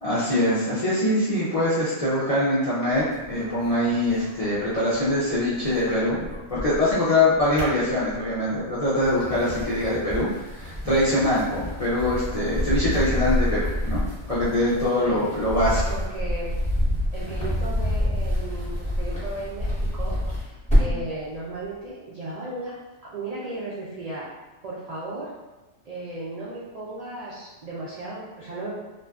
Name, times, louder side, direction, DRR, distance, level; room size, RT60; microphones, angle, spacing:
voice 1, 0.0-6.2 6.5-14.0 14.3-15.8, left 1 dB, 50° left, -10 dB, 0.4 m, -23 dB
sound 1, 2.9-5.1 5.4-7.0 7.3-8.4 8.9-21.1, equal, 5° left, 0.7 m, -28 dB
voice 2, 14.9-15.3 15.9-16.6 17.1-20.2 20.4-22.8 23.0-24.3 24.6-25.3 25.9-28.7, right 2 dB, 75° right, -7 dB, 0.3 m, -35 dB
2.5 x 2.2 x 2.2 m, 1.1 s
omnidirectional pair, 1.2 m